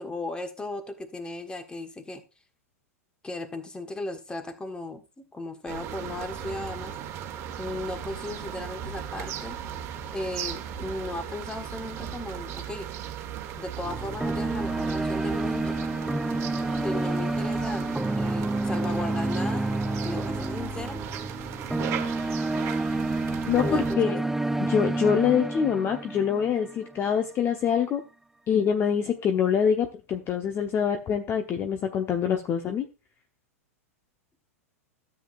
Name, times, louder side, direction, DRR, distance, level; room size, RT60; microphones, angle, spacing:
voice 1, 0.0-2.2 3.2-6.9 7.6-9.6 10.1-12.9 13.6-15.8 16.8-19.7 20.0-21.0 23.6-24.1, left 2 dB, 10° left, 7 dB, 1.5 m, -36 dB
sound 1, 5.7-23.9, right 9 dB, 35° right, 1.5 m, -37 dB
sound 2, 13.8-27.0, right 2 dB, 5° right, 0.4 m, -29 dB
voice 2, 23.5-24.2 24.6-28.0 28.5-32.9, left 7 dB, 30° left, 5 dB, 1.0 m, -25 dB
13.0 x 8.0 x 2.5 m, 0.29 s
figure-of-eight pair, 100°, 8 cm